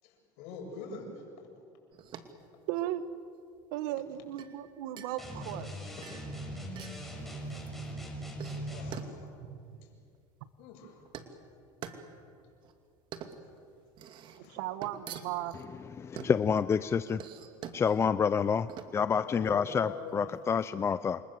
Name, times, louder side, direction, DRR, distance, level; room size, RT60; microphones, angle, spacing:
voice 1, 0.0-1.3 5.9-6.2 6.9-8.0 8.4-9.3 10.6-11.0 14.4-14.6 19.2-20.2, left 5 dB, 70° left, 2 dB, 7.7 m, -45 dB
sound 1, 1.9-20.7, right 7 dB, 50° right, 2.4 m, -48 dB
voice 2, 2.7-3.0 3.7-5.7 9.4-9.8 14.5-15.6, right 13 dB, 75° right, 12 dB, 1.5 m, -36 dB
sound 2, 5.2-9.0, right 1 dB, ahead, 6.8 m, -40 dB
voice 3, 16.0-17.2 17.7-21.2, left 6 dB, 25° left, 14 dB, 0.6 m, -28 dB
28.5 x 25.5 x 7.8 m, 2.4 s
supercardioid pair, 115°, 11 cm